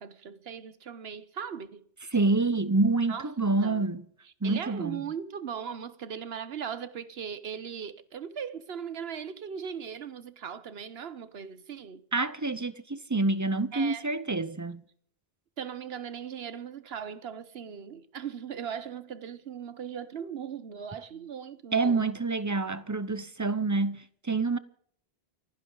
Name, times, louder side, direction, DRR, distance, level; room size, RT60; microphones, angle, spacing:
voice 1, 0.0-1.8 3.1-3.3 3.6-3.9 4.4-12.0 13.7-14.0 15.6-22.1, right 7 dB, 75° right, 1.2 m, -38 dB
voice 2, 2.1-4.1 4.4-5.0 12.1-14.8 21.7-24.6, right 3 dB, 20° right, 0.6 m, -27 dB
29.5 x 10.5 x 3.9 m
omnidirectional pair, 1.0 m